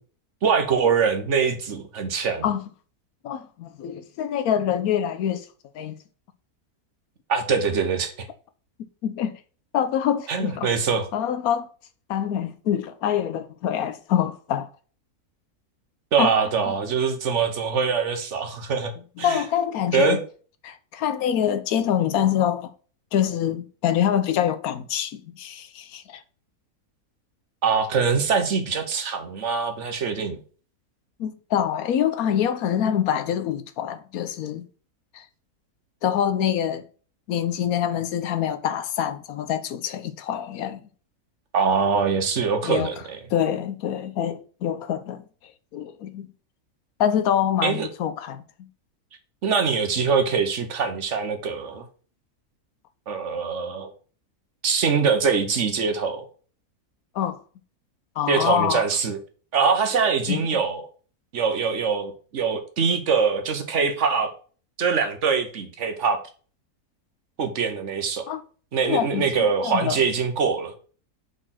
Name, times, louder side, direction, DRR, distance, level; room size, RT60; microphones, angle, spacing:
voice 1, 0.4-2.4 7.3-8.3 10.3-11.1 16.1-18.9 19.2-19.4 19.9-20.2 27.6-30.4 41.5-43.2 47.6-47.9 49.4-51.8 53.1-53.9 54.6-56.2 58.3-59.2 59.5-60.8 61.3-64.3 64.8-66.2 67.4-68.2 68.7-70.7, right 5 dB, 55° right, 1.3 m, -23 dB
voice 2, 3.2-5.5 5.7-5.9 9.0-9.4 9.7-10.7 11.1-11.7 12.1-14.7 16.2-16.3 19.2-20.2 20.6-22.7 23.1-26.2 31.2-34.7 35.1-35.2 36.0-36.8 37.3-40.8 42.6-42.9 43.3-45.2 45.7-46.3 47.0-48.7 57.1-57.4 58.2-58.8 60.3-60.5 68.3-68.4 68.8-69.2 69.6-70.0, left 9 dB, 75° left, 1.1 m, -25 dB
5.0 x 4.4 x 5.7 m
omnidirectional pair, 1.6 m